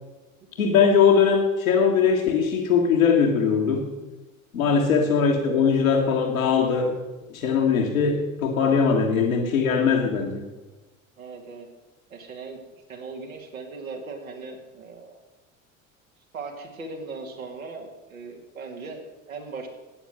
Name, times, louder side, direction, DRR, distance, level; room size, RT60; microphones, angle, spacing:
voice 1, 0.6-3.9 4.5-7.0 7.3-10.4, left 6 dB, 80° left, 0 dB, 1.8 m, -21 dB
voice 2, 4.7-5.1 11.2-11.7 12.1-12.6 12.9-15.2 16.3-19.7, right 4 dB, 80° right, 1 dB, 2.7 m, -38 dB
13.0 x 9.3 x 7.8 m, 1.2 s
figure-of-eight pair, 70°, 41 cm